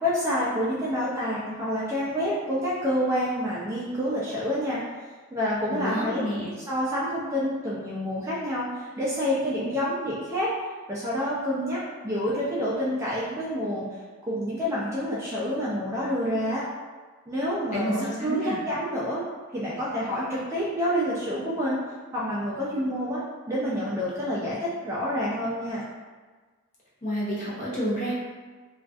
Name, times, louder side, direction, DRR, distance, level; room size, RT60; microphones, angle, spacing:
voice 1, 0.0-4.8 5.3-6.3 6.7-10.5 10.9-13.8 14.3-16.6 17.3-19.2 19.5-21.8 22.1-23.2 23.5-25.8, equal, 15° right, -8 dB, 0.3 m, -28 dB
voice 2, 5.7-6.5 17.7-18.6 27.0-28.1, equal, 35° left, -7 dB, 0.6 m, -29 dB
2.5 x 2.3 x 2.3 m, 1.4 s
head